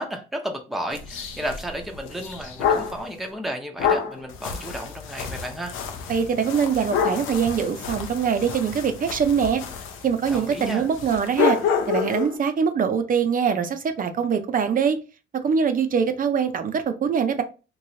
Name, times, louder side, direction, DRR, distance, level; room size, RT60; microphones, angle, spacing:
voice 1, 0.0-5.7 10.3-10.9, equal, ahead, 0.7 m, -33 dB
sound 1, 0.9-3.0 3.8-12.4, left 7 dB, 90° left, 0.6 m, -28 dB
voice 2, 6.1-9.6 10.0-11.6 11.9-15.0 15.4-17.4, right 6 dB, 45° right, 0.6 m, -23 dB
3.1 x 2.9 x 2.7 m
cardioid pair, 90°, 20 cm